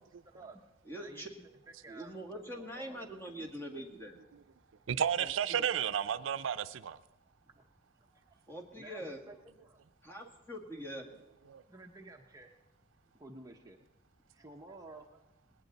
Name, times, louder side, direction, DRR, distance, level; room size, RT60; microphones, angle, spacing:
voice 1, 0.2-0.6 0.9-1.2 1.8-2.2 2.5-3.0 5.2-5.7 7.6-7.7 8.1-8.3 8.7-9.8 11.7-12.5 13.1-13.8 14.3-15.2, right 2 dB, 20° right, 0.7 m, -52 dB
voice 2, 0.9-1.3 1.9-4.2 8.5-9.2 10.0-11.1, equal, 10° left, 1.9 m, -43 dB
voice 3, 4.9-7.0 11.5-11.6, right 8 dB, 70° right, 0.4 m, -32 dB
19.5 x 18.5 x 4.0 m
head